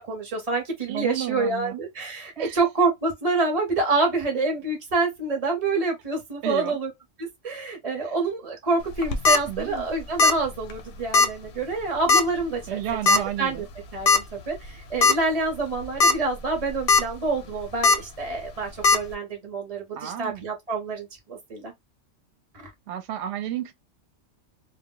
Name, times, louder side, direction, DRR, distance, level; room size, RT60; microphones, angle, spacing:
voice 1, 0.0-6.9 7.2-12.8 13.1-13.7 13.9-21.7 22.5-22.7, right 3 dB, 35° right, 0.7 m, -27 dB
voice 2, 0.9-1.8 2.4-2.6 6.4-6.8 8.0-8.1 9.5-9.9 12.7-13.7 20.0-20.5 22.9-23.7, right 11 dB, 65° right, 0.8 m, -32 dB
sound 1, 8.9-9.4 10.2-10.4 10.7-10.8 11.1-11.3 12.1-12.4 13.1-13.2 14.1-14.2 14.6-14.7 15.0-15.1 15.8-16.1 16.5-17.0 17.8-18.0 18.8-19.0, left 4 dB, 60° left, 0.6 m, -17 dB
2.2 x 2.0 x 3.7 m
omnidirectional pair, 1.3 m